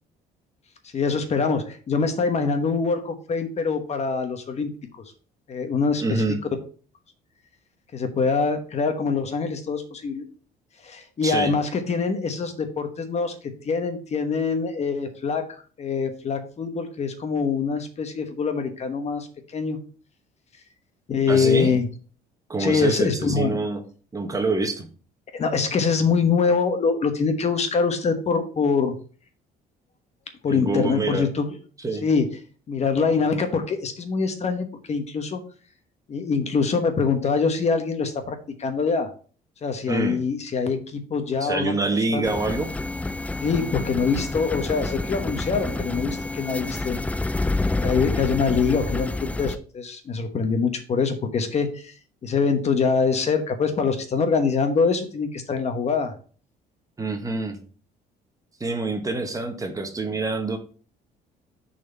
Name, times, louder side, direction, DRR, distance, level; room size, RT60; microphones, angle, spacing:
voice 1, 0.9-4.7 5.5-6.2 7.9-10.3 10.8-13.3 13.6-19.3 19.5-19.8 21.1-21.9 22.6-23.6 25.3-28.9 30.4-31.5 32.0-32.3 32.7-35.4 36.1-39.1 39.6-41.7 42.1-42.2 43.4-47.0 47.8-49.1 49.4-51.9 52.2-56.1, left 5 dB, 40° left, 7 dB, 1.2 m, -24 dB
voice 2, 6.0-6.4 11.2-11.5 21.3-21.8 22.5-23.8 24.1-24.9 30.5-31.3 31.8-32.1 39.9-40.2 41.4-42.7 57.0-57.6 58.6-60.6, right 3 dB, 20° right, 5 dB, 1.2 m, -26 dB
sound 1, 42.2-49.6, left 2 dB, 10° left, 0.4 m, -28 dB
6.3 x 4.2 x 5.5 m, 0.40 s
cardioid pair, 110°, 17 cm